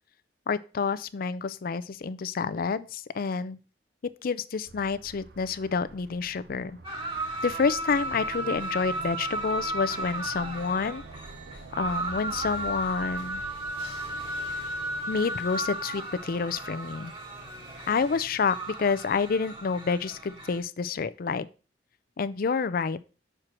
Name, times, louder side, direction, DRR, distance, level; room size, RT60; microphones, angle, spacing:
voice 1, 0.5-3.6 4.0-6.8 7.4-11.0 11.8-13.4 15.1-17.1 17.9-21.5 22.2-23.0, left 5 dB, 55° left, 14 dB, 0.4 m, -28 dB
sound 1, 4.6-15.0, right 2 dB, 60° right, 0.8 m, -48 dB
sound 2, 6.8-20.6, right 2 dB, 30° right, 2.1 m, -35 dB
6.5 x 4.5 x 6.0 m, 0.35 s
head